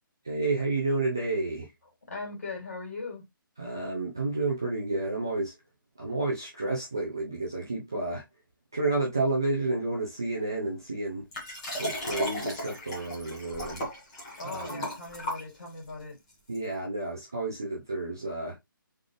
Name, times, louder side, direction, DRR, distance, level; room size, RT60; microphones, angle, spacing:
voice 1, 0.2-1.7 3.6-5.5 6.0-8.2 8.7-11.3 11.8-13.9 14.4-14.9 16.5-18.6, right 2 dB, 10° right, 0.3 m, -30 dB
voice 2, 2.1-3.2 14.4-16.2, left 3 dB, 45° left, 2.6 m, -39 dB
Liquid, 11.3-15.9 16.5-16.6, left 1 dB, 15° left, 1.3 m, -35 dB
3.9 x 3.8 x 3.2 m
hypercardioid pair, 175°, 11 cm